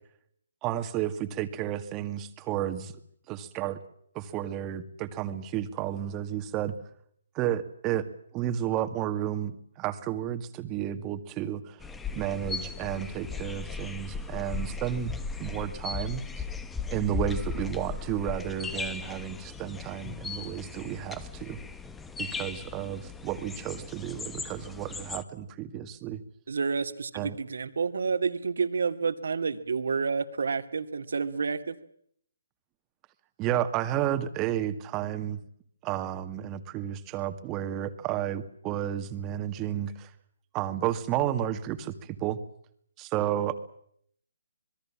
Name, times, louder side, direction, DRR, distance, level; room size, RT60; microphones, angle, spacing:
voice 1, 0.6-2.9 3.3-3.8 4.1-6.7 7.3-8.1 8.3-11.9 12.1-15.1 15.4-16.4 16.9-21.6 22.2-26.2 27.1-27.4 33.4-35.4 35.8-40.1 40.5-42.4 43.0-43.5, right 11 dB, 20° right, 10 dB, 2.0 m, -32 dB
sound 1, 11.8-25.2, left 4 dB, 5° left, 1.4 m, -37 dB
voice 2, 26.5-31.8, right 5 dB, 70° right, 10 dB, 2.5 m, -29 dB
27.0 x 21.5 x 7.4 m, 0.67 s
hypercardioid pair, 150°, 0 cm